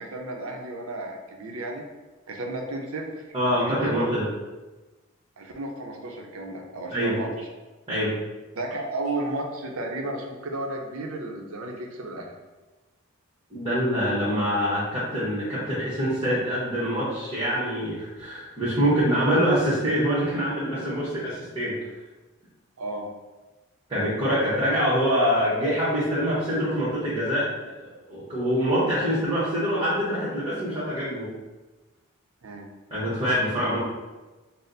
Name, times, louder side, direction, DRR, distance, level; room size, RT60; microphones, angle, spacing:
voice 1, 0.0-1.8 2.3-3.1 3.4-4.1 5.4-7.3 8.5-12.3 22.8-23.1 32.4-32.7, right 2 dB, 70° right, 1 dB, 0.6 m, -33 dB
voice 2, 3.3-4.2 6.9-7.1 7.9-8.1 13.5-21.7 23.9-27.4 27.8-31.3 32.9-33.8, equal, 25° right, -9 dB, 1.0 m, -25 dB
4.1 x 2.0 x 3.9 m, 1.2 s
head